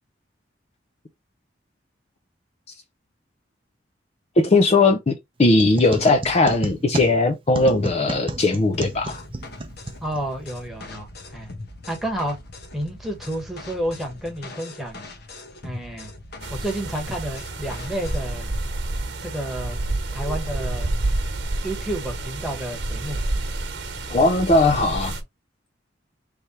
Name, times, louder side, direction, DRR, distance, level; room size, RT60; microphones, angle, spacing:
voice 1, 4.4-5.1 5.4-9.2 24.1-25.1, left 2 dB, 35° left, 0.5 m, -18 dB
sound 1, 5.4-10.5, right 2 dB, 30° right, 0.6 m, -32 dB
sound 2, 8.7-18.4, left 2 dB, 60° left, 1.1 m, -41 dB
voice 2, 10.0-11.5 11.9-12.4 12.7-15.0 15.6-16.1 16.5-18.5 19.2-19.8 20.1-20.9 21.6-23.2, right 1 dB, ahead, 1.4 m, -30 dB
sound 3, 16.4-25.2, right 2 dB, 65° right, 1.2 m, -29 dB
3.4 x 3.3 x 4.2 m
head